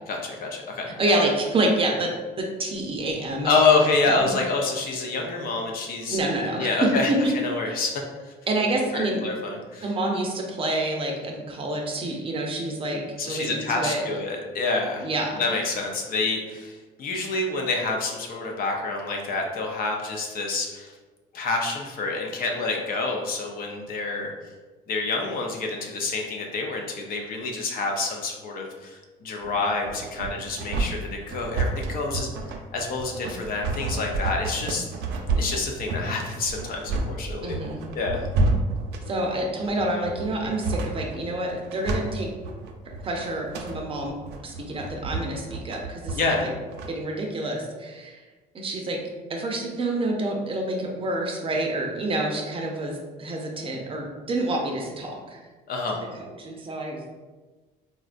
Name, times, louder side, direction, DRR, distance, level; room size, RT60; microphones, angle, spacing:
voice 1, 0.1-0.9 3.4-6.2 6.6-7.9 8.2-8.3 8.9-9.9 13.2-15.1 15.4-20.9 21.3-24.3 24.9-32.3 32.7-34.9 35.3-37.6 37.9-38.2 46.1-46.4 55.7-56.0, left 3 dB, 60° left, 1 dB, 0.6 m, -27 dB
voice 2, 1.0-2.1 2.4-3.5 4.1-4.3 6.1-7.3 7.7-7.8 8.5-9.2 9.8-14.0 15.0-15.4 37.4-37.8 39.1-42.3 43.0-44.1 44.4-46.5 46.9-48.2 48.5-49.0 49.3-55.4 56.2-57.0, right 1 dB, 30° right, 0 dB, 0.6 m, -27 dB
sound 1, 29.4-46.9, right 3 dB, 80° right, 0.4 m, -30 dB
3.8 x 2.2 x 2.5 m, 1.3 s
cardioid pair, 110°, 17 cm